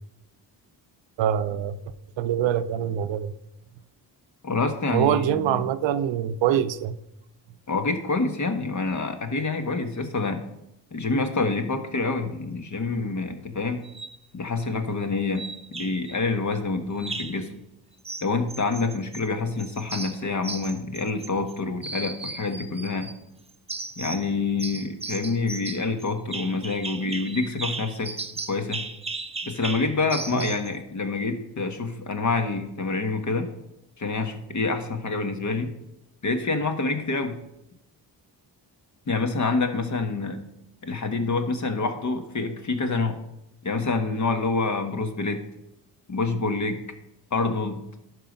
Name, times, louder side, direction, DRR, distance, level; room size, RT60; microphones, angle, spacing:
voice 1, 1.2-1.8 2.2-3.3 4.9-7.0 30.3-30.5, right 10 dB, 80° right, 0.6 m, -24 dB
voice 2, 4.4-5.6 7.7-10.4 10.9-13.8 14.3-15.4 15.7-17.6 18.2-23.1 24.0-28.1 28.5-28.8 29.4-33.5 34.0-35.7 36.2-37.4 39.1-40.4 40.8-43.2 43.6-45.4 46.1-46.8 47.3-47.8, left 3 dB, 40° left, 1.3 m, -27 dB
sound 1, 13.8-14.2 15.4-16.2 17.0-17.4 18.0-19.3 19.6-21.5 21.8-23.2 23.7-24.3 24.6-30.7, right 3 dB, 15° right, 0.6 m, -36 dB
11.5 x 4.8 x 5.3 m
cardioid pair, 90°, 44 cm